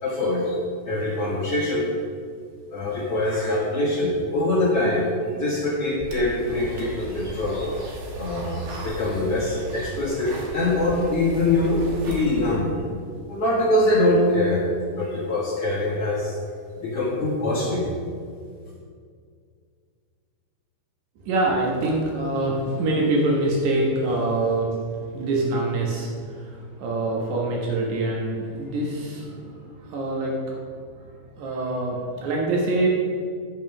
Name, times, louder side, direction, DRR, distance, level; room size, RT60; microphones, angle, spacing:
voice 1, 0.0-0.6 0.8-1.9 2.7-12.7 13.3-14.6 14.9-16.4 16.8-17.9, left 1 dB, 80° left, -7 dB, 1.3 m, -23 dB
sound 1, 6.0-12.6, right 1 dB, 65° right, 2.3 m, -36 dB
voice 2, 21.2-30.6 31.4-32.9, right 2 dB, 85° right, -2 dB, 1.6 m, -25 dB
12.0 x 5.4 x 5.9 m, 2.1 s
omnidirectional pair, 5.4 m